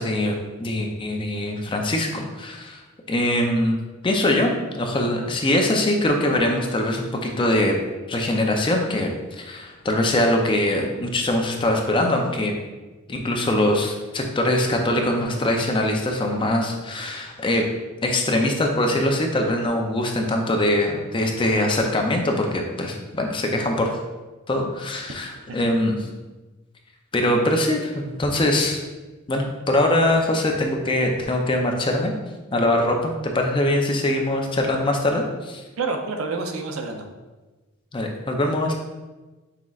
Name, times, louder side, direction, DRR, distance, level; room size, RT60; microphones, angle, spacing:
voice 1, 0.0-2.8 3.1-3.8 4.0-7.8 8.1-12.5 13.1-17.6 18.0-24.0 24.5-26.1 27.1-28.8 29.3-32.1 32.5-35.6 37.9-38.7, left 1 dB, 25° left, 2 dB, 0.5 m, -22 dB
voice 2, 35.8-37.1, right 3 dB, 70° right, 5 dB, 0.5 m, -28 dB
5.8 x 3.7 x 2.4 m, 1.2 s
head